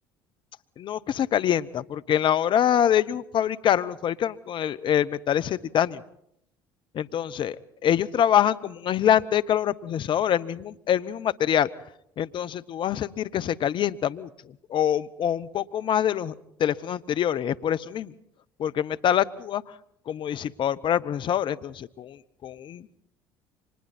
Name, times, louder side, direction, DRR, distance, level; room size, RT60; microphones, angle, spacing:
voice 1, 0.8-6.0 6.9-7.5 7.8-11.7 12.2-14.3 14.7-16.3 16.6-18.1 18.6-19.6 20.1-22.2 22.4-23.0, left 10 dB, 50° left, 16 dB, 0.9 m, -25 dB
30.0 x 25.5 x 4.3 m, 0.73 s
hypercardioid pair, 65°, 10 cm